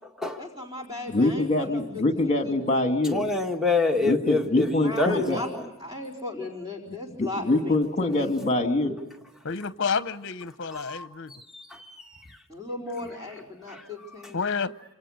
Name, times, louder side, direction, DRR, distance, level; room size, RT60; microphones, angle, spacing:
voice 1, 0.4-2.5 4.8-8.3 12.5-14.4, left 2 dB, 20° right, 4.5 m, -37 dB
voice 2, 1.1-3.3 4.0-5.4 7.2-9.0, left 2 dB, 30° left, 2.2 m, -24 dB
voice 3, 3.1-5.5 10.7-11.1 11.5-12.2 13.7-13.8, left 3 dB, ahead, 1.6 m, -27 dB
voice 4, 9.4-11.3 14.3-14.7, left 5 dB, 55° left, 0.8 m, -29 dB
27.5 x 27.0 x 6.5 m
head